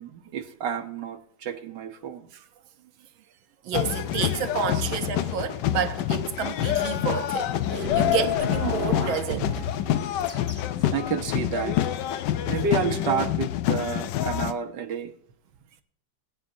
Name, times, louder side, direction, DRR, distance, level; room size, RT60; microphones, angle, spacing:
voice 1, 0.0-2.3 7.8-8.0 10.9-11.8 12.5-15.1, right 6 dB, 65° right, 1.4 m, -30 dB
voice 2, 3.6-9.8 10.4-10.5, right 8 dB, 85° right, 1.7 m, -30 dB
sound 1, 3.7-14.5, left 12 dB, 70° left, 1.2 m, -27 dB
sound 2, 7.6-9.4 10.2-10.7 11.2-11.3, left 4 dB, 30° left, 1.2 m, -32 dB
20.0 x 9.4 x 2.7 m
omnidirectional pair, 2.1 m